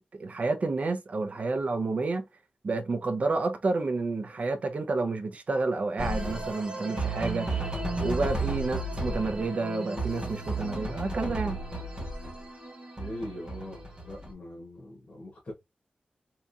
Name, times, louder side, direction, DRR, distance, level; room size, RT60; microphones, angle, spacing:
voice 1, 0.0-2.2 2.6-7.5 8.0-11.6, right 3 dB, 50° right, 0.5 m, -30 dB
sound 1, 6.0-14.3, right 2 dB, 30° right, 1.4 m, -33 dB
voice 2, 13.0-15.5, left 1 dB, 50° left, 1.4 m, -41 dB
3.5 x 2.9 x 2.6 m
wide cardioid pair, 120°, 3 cm